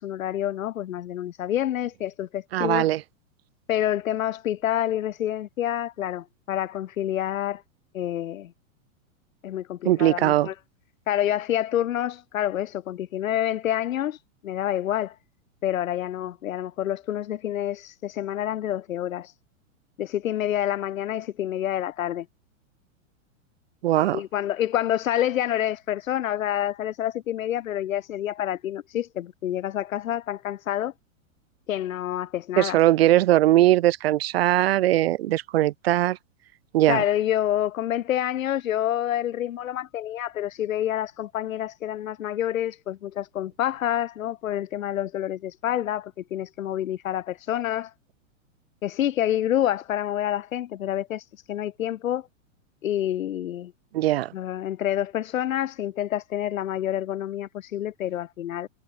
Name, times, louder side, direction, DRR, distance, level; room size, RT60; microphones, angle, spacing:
voice 1, 0.0-2.9 3.7-7.6 7.9-8.5 9.4-10.5 11.1-15.1 15.6-19.3 20.0-22.3 23.9-30.9 31.7-32.8 36.9-47.9 48.8-52.2 52.8-53.7 54.3-58.7, left 12 dB, 75° left, 2.3 m, -28 dB
voice 2, 2.5-3.0 9.8-10.5 23.8-24.2 32.6-36.2 36.7-37.0 53.9-54.3, right 15 dB, 45° right, 0.9 m, -20 dB
supercardioid pair, 175°, 41 cm